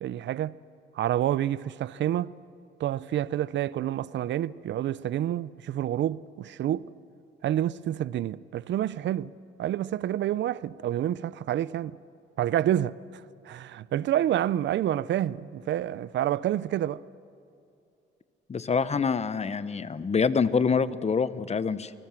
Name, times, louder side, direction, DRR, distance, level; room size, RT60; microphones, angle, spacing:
voice 1, 0.0-0.5 0.9-2.3 2.8-6.9 7.4-9.3 9.6-12.0 12.4-17.0, right 12 dB, 65° right, 0.6 m, -28 dB
voice 2, 18.5-21.9, left 5 dB, 35° left, 1.0 m, -26 dB
28.5 x 19.0 x 7.7 m
cardioid pair, 90°, 20 cm